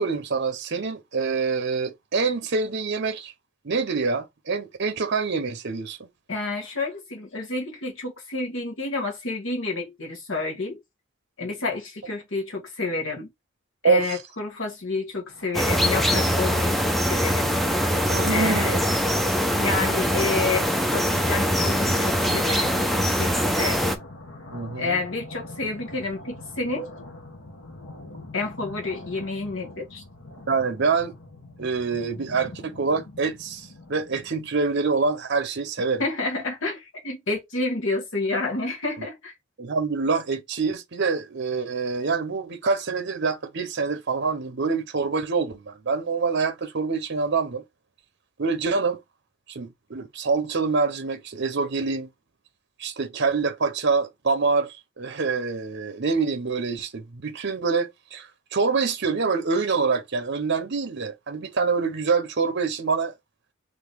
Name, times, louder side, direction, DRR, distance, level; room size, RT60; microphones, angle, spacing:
voice 1, 0.0-3.3 3.6-6.1 13.8-14.2 18.0-18.8 24.5-25.0 30.5-31.1 31.6-36.0 39.0-39.1 39.6-47.6 48.4-49.0 49.5-52.1 52.8-63.1, right 4 dB, 60° right, 0.8 m, -26 dB
voice 2, 6.3-10.8 11.4-13.3 13.8-16.7 17.1-17.6 18.3-18.8 19.6-22.8 23.2-23.8 24.8-26.9 28.3-30.0 36.0-39.3, left 3 dB, 65° left, 1.6 m, -29 dB
sound 1, 15.3-34.4, left 2 dB, 85° left, 1.4 m, -44 dB
sound 2, 15.5-24.0, equal, ahead, 0.6 m, -23 dB
4.0 x 3.2 x 3.5 m
head